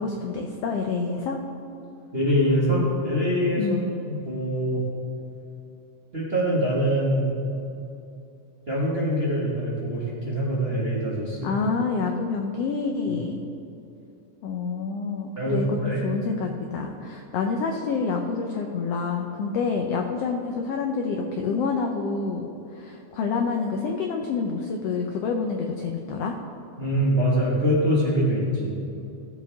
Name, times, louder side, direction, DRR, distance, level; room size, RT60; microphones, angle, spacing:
voice 1, 0.0-1.4 3.6-3.9 11.4-13.4 14.4-15.8 16.0-26.3, left 4 dB, 90° left, 3 dB, 1.3 m, -27 dB
voice 2, 2.1-3.7 4.1-4.8 6.1-7.3 8.7-11.5 15.4-16.0 26.8-28.8, equal, 30° right, -6 dB, 1.1 m, -24 dB
16.5 x 7.4 x 3.5 m, 2.7 s
omnidirectional pair, 3.6 m